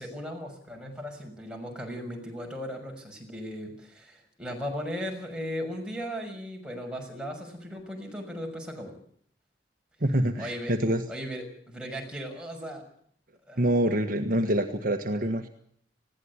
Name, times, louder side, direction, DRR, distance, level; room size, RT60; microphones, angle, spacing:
voice 1, 0.0-8.9 10.4-10.7 11.1-12.8 13.5-13.7, equal, 5° right, 0 dB, 6.2 m, -37 dB
voice 2, 10.0-11.0 13.6-15.5, right 1 dB, 50° right, 5 dB, 1.5 m, -26 dB
20.0 x 16.5 x 9.8 m, 0.64 s
head